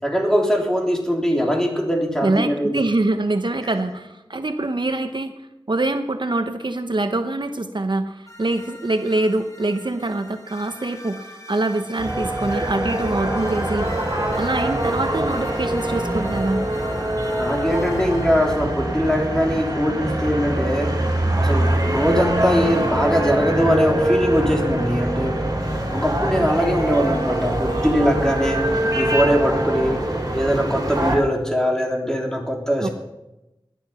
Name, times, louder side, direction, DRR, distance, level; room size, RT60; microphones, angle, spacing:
voice 1, 0.0-2.8 17.4-21.0 21.4-25.5 25.9-30.0 30.3-32.9, equal, 5° left, 1 dB, 3.4 m, -21 dB
voice 2, 2.2-5.3 5.7-13.9 14.3-16.7 32.8-32.9, right 2 dB, 65° right, 7 dB, 1.0 m, -24 dB
sound 1, 8.3-19.5, equal, 40° left, 3.3 m, -41 dB
sound 2, 12.0-31.2, right 1 dB, 45° right, 4.2 m, -23 dB
18.0 x 11.0 x 5.8 m, 0.96 s
wide cardioid pair, 50°, 9 cm